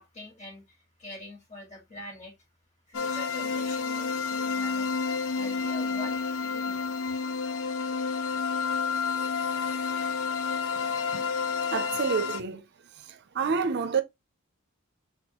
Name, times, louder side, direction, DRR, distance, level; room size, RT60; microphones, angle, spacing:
voice 1, 0.0-2.3 2.9-4.9 5.3-6.8, left 2 dB, 35° left, 1.9 m, -44 dB
sound 1, 2.9-12.4, left 5 dB, 70° left, 0.5 m, -30 dB
voice 2, 10.9-11.3 11.7-12.6 12.9-14.0, right 5 dB, 55° right, 0.5 m, -29 dB
4.5 x 3.5 x 3.0 m
head